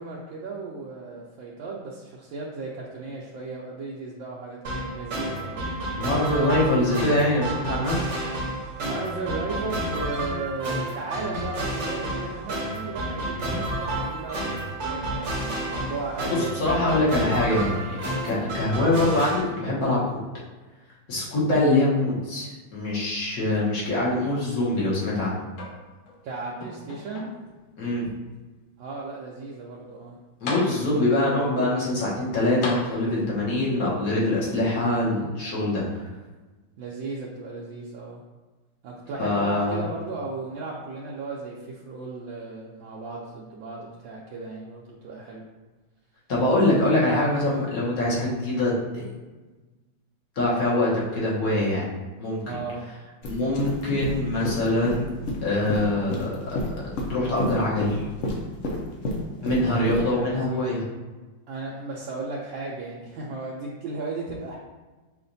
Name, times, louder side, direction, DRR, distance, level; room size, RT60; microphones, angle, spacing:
voice 1, 0.0-5.6 8.8-16.9 26.2-27.4 28.8-30.2 36.8-38.2 38.8-45.4 52.4-52.9 59.4-60.7 61.5-64.6, right 3 dB, 80° right, -5 dB, 1.3 m, -35 dB
sound 1, 4.6-19.4, right 1 dB, 50° right, 1.0 m, -31 dB
voice 2, 6.0-8.0 13.5-13.6 16.4-20.0 21.1-25.4 27.8-28.1 30.4-36.1 39.2-39.8 46.3-49.1 50.4-51.8 52.2-52.6 53.3-55.1 55.4-56.4 57.1-58.0 59.4-60.8, left 1 dB, 55° left, -6 dB, 1.5 m, -24 dB
sound 2, 25.5-26.2 26.6-27.6 28.3-28.4 30.0-30.1 30.5-31.2 32.6-33.5 34.5-34.6, left 2 dB, 90° left, 1.5 m, -36 dB
sound 3, 53.2-60.1, left 1 dB, 70° left, 0.7 m, -30 dB
5.8 x 2.4 x 2.6 m, 1.2 s
omnidirectional pair, 2.1 m